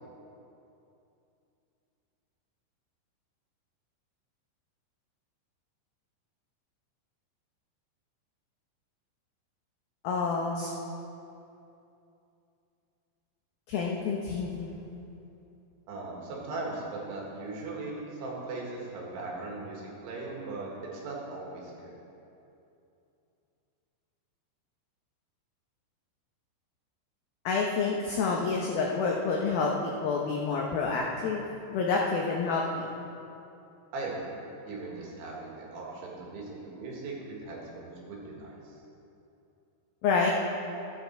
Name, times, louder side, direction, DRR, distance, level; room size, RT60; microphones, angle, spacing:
voice 1, 10.0-10.7 13.7-14.7 27.5-31.4 31.7-32.9 40.0-40.3, left 4 dB, 85° left, -1 dB, 2.1 m, -28 dB
voice 2, 15.9-21.9 33.9-38.8, right 3 dB, 80° right, -3 dB, 4.1 m, -39 dB
13.5 x 9.4 x 4.6 m, 2.7 s
omnidirectional pair, 5.4 m